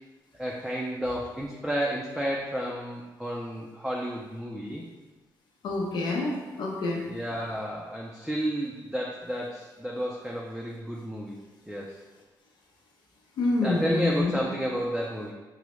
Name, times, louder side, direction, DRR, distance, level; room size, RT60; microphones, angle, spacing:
voice 1, 0.4-4.8 7.1-11.4 11.7-12.0 13.6-15.3, equal, 5° right, -3 dB, 0.4 m, -31 dB
voice 2, 5.6-7.0 13.4-14.4, left 2 dB, 85° left, -1 dB, 0.7 m, -27 dB
4.7 x 2.0 x 3.0 m, 1.2 s
cardioid pair, 120°, 8 cm